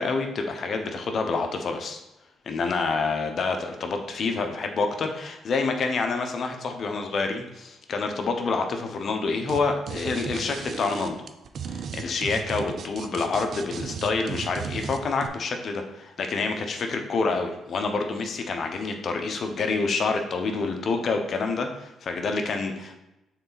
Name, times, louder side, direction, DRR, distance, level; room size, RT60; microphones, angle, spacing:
voice 1, 0.0-2.0 2.5-11.2 11.7-23.0, left 4 dB, 55° left, 5 dB, 0.9 m, -27 dB
sound 1, 9.5-9.6 9.9-15.3, right 6 dB, 60° right, 0.5 m, -35 dB
6.6 x 4.0 x 4.0 m, 0.92 s
cardioid pair, 90°, 0 cm